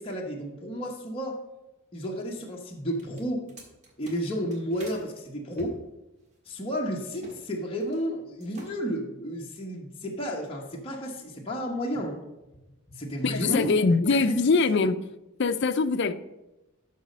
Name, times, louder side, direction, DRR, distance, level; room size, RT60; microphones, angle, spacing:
voice 1, 0.0-1.4 1.9-3.5 4.0-5.8 6.5-12.2 12.9-13.7 14.1-14.4 14.8-14.9, equal, 25° left, -2 dB, 1.0 m, -32 dB
sound 1, 2.9-5.0 5.5-7.4 7.7-8.1 8.4-9.0, right 1 dB, 35° right, 1.7 m, -49 dB
voice 2, 13.2-15.0 15.4-16.1, left 4 dB, 55° left, 11 dB, 0.5 m, -23 dB
11.5 x 4.1 x 5.4 m, 1.0 s
head